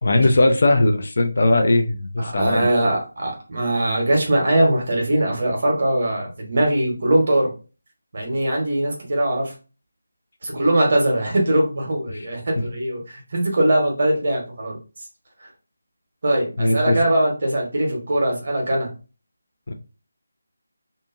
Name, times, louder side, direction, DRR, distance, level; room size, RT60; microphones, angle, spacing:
voice 1, 0.0-2.7 12.1-12.3 16.6-17.0 19.7-19.8, left 2 dB, 50° left, 5 dB, 0.4 m, -19 dB
voice 2, 2.3-7.5 8.1-9.5 10.4-14.8 16.2-18.9, right 1 dB, 45° right, 0 dB, 1.1 m, -21 dB
2.7 x 2.5 x 2.5 m, 0.33 s
figure-of-eight pair, 160°, 0 cm